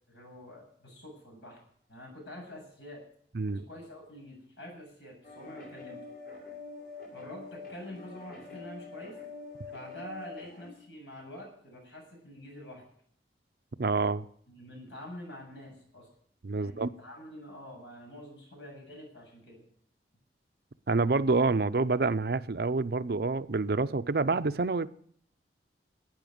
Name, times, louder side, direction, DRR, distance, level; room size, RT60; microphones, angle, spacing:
voice 1, 0.1-1.6 1.9-3.0 3.5-6.0 7.1-9.2 9.7-12.8 14.5-16.1 16.5-19.6, left 1 dB, 80° left, 7.5 m, -46 dB
sound 1, 5.2-10.7, left 3 dB, 55° left, 5.5 m, -45 dB
voice 2, 13.8-14.3 16.4-16.9 20.9-24.9, right 3 dB, 60° right, 0.6 m, -27 dB
12.0 x 9.5 x 9.4 m
head